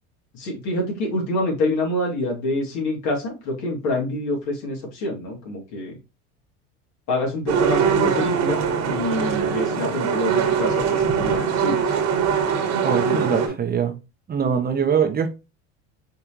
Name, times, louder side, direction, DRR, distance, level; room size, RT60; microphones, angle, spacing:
voice 1, 0.3-6.0 7.1-8.6 8.9-11.8 12.9-13.4, left 1 dB, 65° left, 2.5 m, -26 dB
sound 1, 7.5-13.5, right 7 dB, 55° right, 1.5 m, -22 dB
voice 2, 12.8-13.9 14.3-15.3, right 7 dB, 30° right, 0.9 m, -22 dB
5.1 x 3.5 x 2.9 m
supercardioid pair, 90°, 32 cm